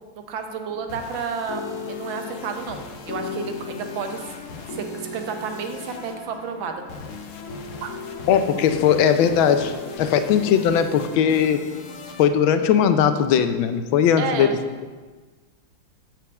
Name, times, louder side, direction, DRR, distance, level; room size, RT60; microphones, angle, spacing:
voice 1, 0.3-4.2 4.7-4.9 5.1-6.8 7.8-7.9 14.2-14.5, right 5 dB, 80° right, 5 dB, 1.6 m, -31 dB
sound 1, 0.7-13.5, left 4 dB, 65° left, 0.8 m, -36 dB
voice 2, 8.3-11.7 12.2-14.6, left 8 dB, 90° left, 9 dB, 1.4 m, -19 dB
7.5 x 4.5 x 7.0 m, 1.4 s
omnidirectional pair, 2.1 m